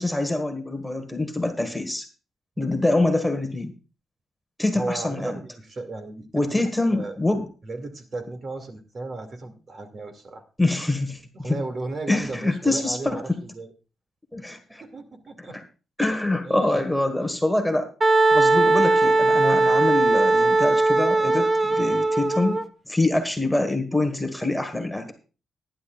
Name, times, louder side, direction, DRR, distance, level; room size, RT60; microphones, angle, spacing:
voice 1, 0.0-2.1 2.6-3.7 4.6-5.3 6.3-7.4 10.6-11.6 12.1-13.2 14.3-14.8 15.5-15.6 16.0-17.9 18.3-25.1, left 2 dB, 5° left, 7 dB, 1.6 m, -25 dB
voice 2, 4.7-6.6 6.9-7.1 7.6-10.4 11.3-13.7 14.8-15.6 16.4-16.9, right 2 dB, 40° right, 7 dB, 2.3 m, -35 dB
Wind instrument woodwind instrument, 18.0-22.6, right 2 dB, 20° right, 0.9 m, -19 dB
19.0 x 10.5 x 2.4 m, 0.34 s
cardioid pair, 105°, 0 cm